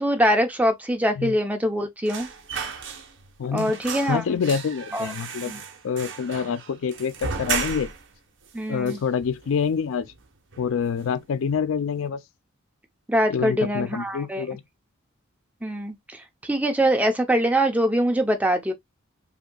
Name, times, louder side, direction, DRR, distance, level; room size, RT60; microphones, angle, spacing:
voice 1, 0.0-2.3 3.5-4.4 4.9-5.1 5.5-5.6 8.5-9.0 13.1-14.4 15.6-15.9 16.5-18.7, equal, 5° right, 0.6 m, -23 dB
sound 1, 2.0-3.3 3.6-8.1 8.5-8.6 8.9-9.7 10.0-10.2 10.5-11.2 11.5-11.7, right 6 dB, 60° right, 1.0 m, -34 dB
voice 2, 3.4-3.8 4.1-5.5 5.8-7.9 8.7-10.1 10.6-12.2 13.3-14.6, left 6 dB, 60° left, 0.4 m, -26 dB
5.0 x 2.8 x 2.2 m
head